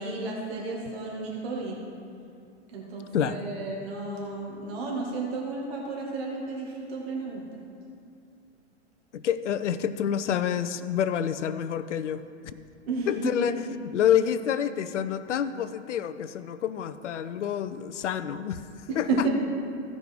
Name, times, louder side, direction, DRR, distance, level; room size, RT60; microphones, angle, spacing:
voice 1, 0.0-1.8 2.7-7.4 12.9-13.5 18.9-19.3, right 3 dB, 55° right, -2 dB, 2.4 m, -32 dB
voice 2, 3.1-3.5 9.1-12.6 13.1-19.3, left 9 dB, 75° left, 12 dB, 0.7 m, -28 dB
15.5 x 5.4 x 4.6 m, 2.4 s
hypercardioid pair, 120°, 36 cm